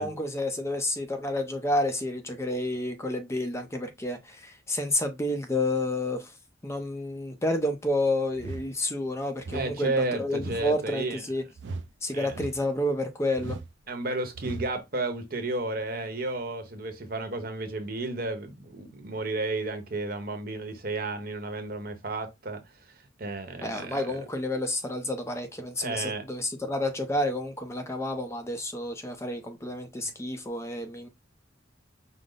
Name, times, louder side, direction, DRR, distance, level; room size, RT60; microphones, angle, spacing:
voice 1, 0.0-6.3 6.6-11.4 12.0-13.6 23.6-31.1, left 1 dB, 15° left, 0.5 m, -30 dB
sound 1, 8.3-8.7 9.4-9.7 10.4-10.7 11.6-11.9 12.3-12.7 13.4-13.7 14.3-14.7, right 3 dB, 70° right, 0.4 m, -38 dB
voice 2, 9.5-11.2 12.1-12.3 13.9-22.6 23.2-24.2 25.8-26.2, right 2 dB, 50° right, 0.9 m, -32 dB
5.1 x 2.0 x 3.8 m
head